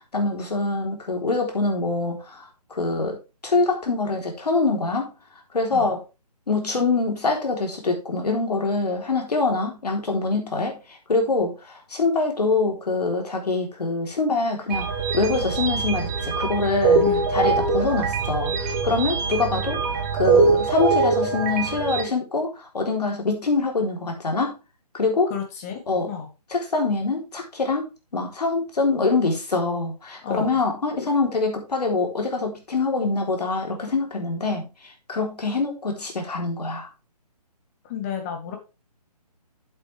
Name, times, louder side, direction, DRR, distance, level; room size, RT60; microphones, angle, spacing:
voice 1, 0.1-3.2 3.4-5.1 5.5-6.0 6.5-14.9 15.1-17.0 17.3-24.5 24.9-25.3 25.9-26.1 26.5-27.8 28.1-36.9, left 3 dB, 75° left, 2 dB, 3.7 m, -24 dB
sound 1, 14.7-22.0, right 4 dB, 25° right, 1.4 m, -23 dB
voice 2, 25.3-25.8 26.1-26.3 30.2-30.6 37.8-38.6, left 8 dB, 25° left, 5 dB, 1.8 m, -31 dB
8.6 x 7.9 x 3.4 m, 0.29 s
hypercardioid pair, 160°, 21 cm